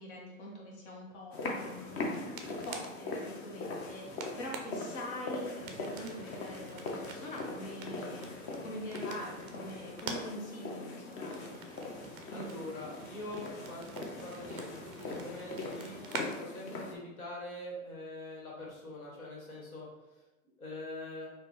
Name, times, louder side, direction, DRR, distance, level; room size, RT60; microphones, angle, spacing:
voice 1, 0.0-2.3 2.6-8.3 8.6-11.5, left 1 dB, 55° left, -3 dB, 1.3 m, -44 dB
sound 1, 1.3-17.0, left 3 dB, 35° left, 0.6 m, -41 dB
sound 2, 1.6-16.3, right 4 dB, 25° right, 0.4 m, -48 dB
voice 2, 12.3-19.9 20.6-21.3, left 1 dB, 90° left, -3 dB, 1.5 m, -44 dB
4.1 x 2.5 x 3.0 m, 1.1 s
hypercardioid pair, 105°, 41 cm